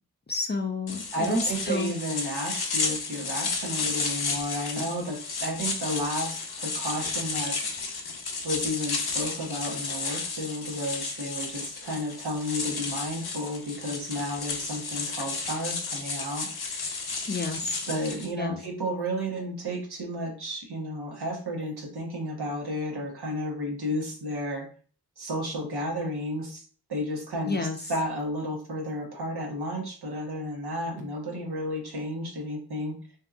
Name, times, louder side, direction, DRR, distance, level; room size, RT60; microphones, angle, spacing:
voice 1, 0.3-1.9 17.3-17.9 18.4-18.6 27.5-27.8, left 3 dB, 25° left, 3 dB, 0.5 m, -30 dB
sound 1, 0.9-18.3, left 4 dB, 70° left, 0.6 m, -33 dB
voice 2, 1.1-7.6 8.4-16.5 17.9-24.7 25.2-26.6 26.9-27.6 27.9-33.0, equal, 75° right, 0 dB, 1.1 m, -32 dB
2.8 x 2.7 x 2.4 m, 0.40 s
wide cardioid pair, 65°, 39 cm